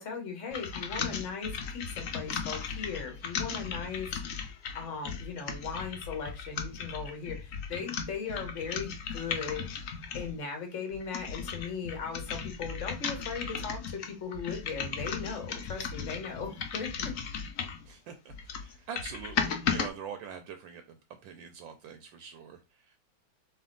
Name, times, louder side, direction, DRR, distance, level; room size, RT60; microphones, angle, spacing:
voice 1, 0.0-9.6 10.1-17.1, left 5 dB, 45° left, 4 dB, 1.3 m, -38 dB
sound 1, 0.5-10.4 10.9-17.9 18.3-19.9, left 6 dB, 65° left, 0.8 m, -36 dB
voice 2, 17.8-23.0, right 7 dB, 75° right, 7 dB, 1.2 m, -44 dB
4.1 x 3.4 x 3.8 m, 0.28 s
omnidirectional pair, 2.2 m